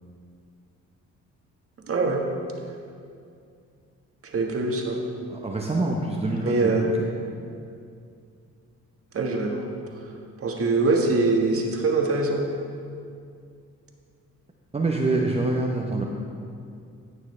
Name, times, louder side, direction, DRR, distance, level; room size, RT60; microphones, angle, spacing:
voice 1, 1.9-2.2 4.3-5.0 6.4-6.9 9.1-9.6 10.4-12.4, right 3 dB, 50° right, 1 dB, 1.5 m, -23 dB
voice 2, 5.3-6.9 14.7-16.0, right 2 dB, 20° right, -1 dB, 0.8 m, -25 dB
16.5 x 6.4 x 3.3 m, 2.4 s
cardioid pair, 90°, 30 cm